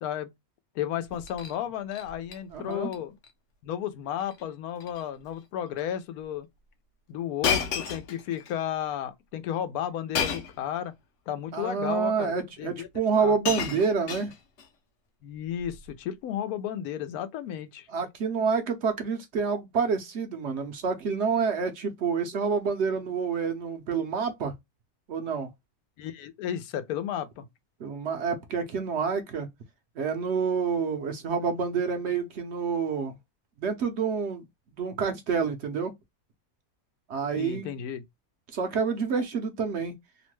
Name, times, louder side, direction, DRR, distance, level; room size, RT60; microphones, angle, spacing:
voice 1, 0.0-0.3 0.7-3.2 3.6-6.5 7.1-10.9 11.3-12.3 12.6-12.9 13.2-13.4 15.2-17.9 26.0-27.4 37.4-38.0, left 10 dB, 90° left, 1.1 m, -33 dB
Shatter, 1.1-1.6 1.9-2.4 2.7-3.0 3.2-3.3 4.2-4.4 4.8-5.0 5.8-5.9 7.4-8.5 10.1-10.6 11.6-11.7 12.8-12.9 13.1-14.7 15.6-15.9, left 6 dB, 65° left, 0.9 m, -32 dB
voice 2, 2.5-2.9 11.5-14.3 17.9-24.5 25.1-25.5 27.8-29.5 30.0-33.2 33.6-34.4 34.7-35.9 37.1-37.8 38.5-39.9, right 5 dB, 65° right, 0.8 m, -28 dB
2.9 x 2.1 x 3.0 m
omnidirectional pair, 1.5 m